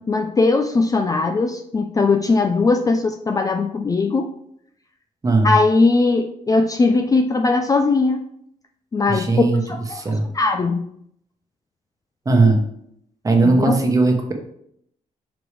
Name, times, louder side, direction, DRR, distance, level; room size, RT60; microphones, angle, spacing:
voice 1, 0.1-4.3 5.4-8.2 8.9-9.3 9.7-10.8 13.4-13.8, left 3 dB, 25° left, 6 dB, 0.4 m, -19 dB
voice 2, 5.2-5.5 9.1-9.6 9.9-10.2 12.2-12.6 13.2-14.3, right 3 dB, 25° right, 2 dB, 1.1 m, -17 dB
6.0 x 5.0 x 3.3 m, 0.72 s
cardioid pair, 120°, 14 cm